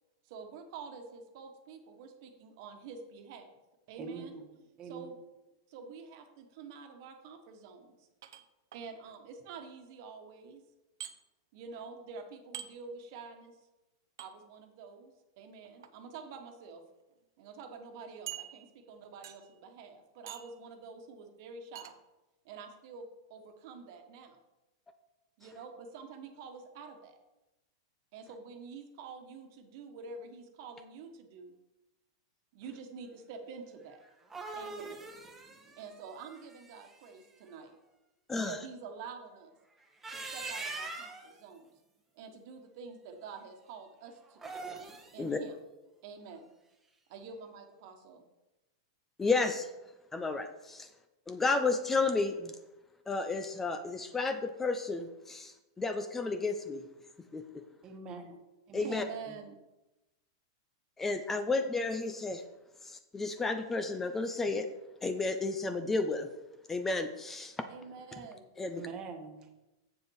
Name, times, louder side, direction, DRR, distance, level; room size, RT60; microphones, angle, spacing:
voice 1, 0.2-3.5 3.9-4.3 4.8-5.2 5.7-7.9 8.7-10.6 11.5-13.6 14.2-16.8 17.4-21.9 22.4-24.4 25.4-27.2 28.1-31.5 32.5-34.0 34.5-35.1 35.8-37.7 38.4-39.6 40.1-41.7 42.1-44.6 45.1-45.6 46.0-46.5 47.1-48.2 58.8-59.6 67.7-68.5, right 5 dB, 55° right, 5 dB, 1.4 m, -47 dB
voice 2, 4.0-4.4 4.8-5.1 57.8-58.4 58.7-59.3 68.8-69.5, right 4 dB, 35° right, 5 dB, 1.4 m, -44 dB
sound 1, 8.2-8.8 11.0-11.1 12.5-12.7 14.2-14.3 15.6-15.9 16.7-16.8 17.1-17.2 18.3-18.9 19.2-19.6 20.3-20.6 21.8-22.0, right 11 dB, 75° right, 0.7 m, -45 dB
sound 2, 34.0-37.1 39.8-41.3 44.3-45.2, right 3 dB, 10° right, 1.2 m, -43 dB
voice 3, 38.3-38.6 45.2-45.4 49.2-49.7 50.1-50.9 51.3-52.5 53.1-56.8 57.3-57.6 58.7-59.0 61.0-62.4 62.8-64.7 65.0-66.3 66.7-67.5 68.6-68.8, left 3 dB, 15° left, 8 dB, 0.6 m, -32 dB
7.6 x 6.9 x 4.7 m, 1.0 s
hypercardioid pair, 125°, 2 cm